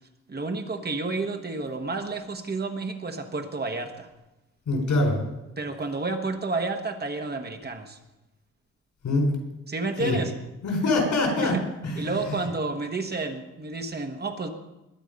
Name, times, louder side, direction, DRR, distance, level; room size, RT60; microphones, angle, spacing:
voice 1, 0.3-4.1 5.6-8.0 9.7-10.3 11.4-11.6 12.0-14.5, right 3 dB, 35° right, 5 dB, 1.3 m, -30 dB
voice 2, 4.7-5.2 9.0-9.3 10.0-10.2 10.6-11.6 11.8-12.3, left 2 dB, 80° left, 2 dB, 4.5 m, -24 dB
21.0 x 8.2 x 5.3 m, 0.97 s
wide cardioid pair, 145°, 29 cm